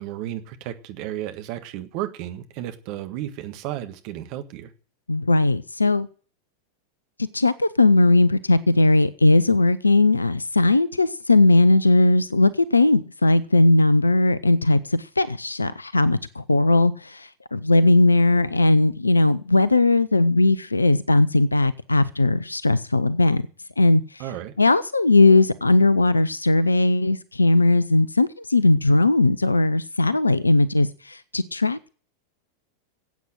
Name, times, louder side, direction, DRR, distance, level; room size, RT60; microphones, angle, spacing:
voice 1, 0.0-4.7 24.2-24.5, right 12 dB, 45° right, 8 dB, 1.5 m, -33 dB
voice 2, 5.1-6.1 7.3-23.4 23.8-24.2 24.6-31.9, left 2 dB, 80° left, 19 dB, 0.6 m, -18 dB
14.0 x 8.4 x 7.6 m, 0.41 s
figure-of-eight pair, 90°, 0 cm